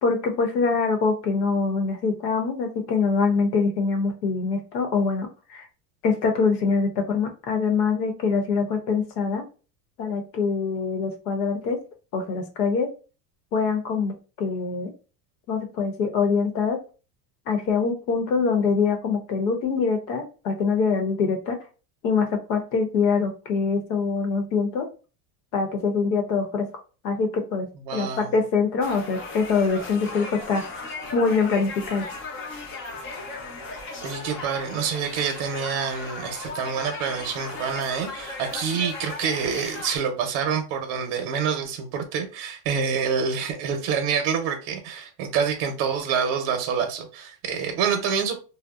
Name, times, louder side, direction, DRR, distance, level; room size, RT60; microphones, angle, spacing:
voice 1, 0.0-5.7 6.0-9.4 10.0-11.8 12.1-12.9 13.5-14.9 15.5-16.8 17.5-21.6 22.0-24.9 25.5-26.7 27.0-32.1, left 5 dB, 85° left, 4 dB, 0.9 m, -24 dB
voice 2, 27.9-28.3 34.0-48.4, right 6 dB, 60° right, 4 dB, 0.7 m, -27 dB
sound 1, 28.8-40.0, left 3 dB, 30° left, 0.4 m, -36 dB
2.7 x 2.0 x 2.3 m, 0.35 s
supercardioid pair, 130°, 48 cm